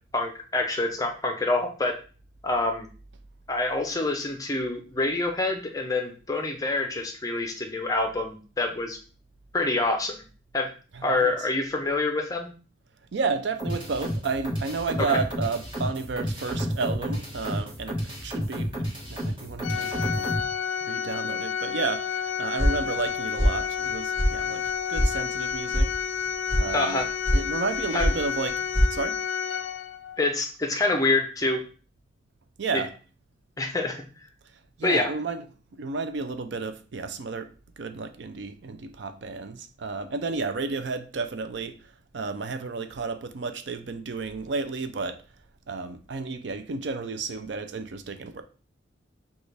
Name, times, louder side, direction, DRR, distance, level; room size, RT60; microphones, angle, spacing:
voice 1, 0.1-2.0 2.4-2.9 3.5-9.0 9.5-10.2 10.5-10.7 11.0-12.5 26.7-27.0 27.9-28.1 30.2-31.6 33.6-34.0 34.8-35.1, left 2 dB, 20° left, 0.6 m, -26 dB
voice 2, 10.9-11.5 13.1-20.3 20.8-24.6 24.9-26.0 26.6-27.0 27.3-28.6 28.9-29.2 32.6-32.9 34.8-35.4 35.8-37.5 37.8-45.2 45.7-48.4, right 4 dB, 65° right, 0.5 m, -32 dB
sound 1, 13.6-20.4, equal, 25° right, 1.4 m, -31 dB
Organ, 19.6-30.2, left 7 dB, 80° left, 0.4 m, -30 dB
sound 2, 22.6-23.1 23.4-23.9 24.1-24.3 24.6-25.1 25.4-25.8 26.1-26.6 26.9-27.4 27.7-28.2 28.4-28.9, equal, 10° right, 1.5 m, -23 dB
6.2 x 2.4 x 3.3 m
head